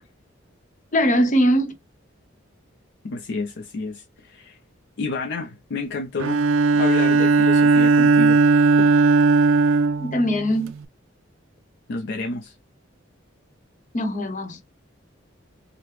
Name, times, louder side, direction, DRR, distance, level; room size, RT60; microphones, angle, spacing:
voice 1, 0.9-1.8 10.0-10.7 13.9-14.6, equal, 40° left, 0.9 m, -21 dB
voice 2, 3.0-4.6 5.0-6.4 6.7-8.4 8.8-8.9 11.9-12.5, left 3 dB, 60° left, 0.5 m, -30 dB
Bowed string instrument, 6.2-10.8, right 3 dB, 75° right, 0.4 m, -17 dB
4.9 x 2.1 x 3.1 m
head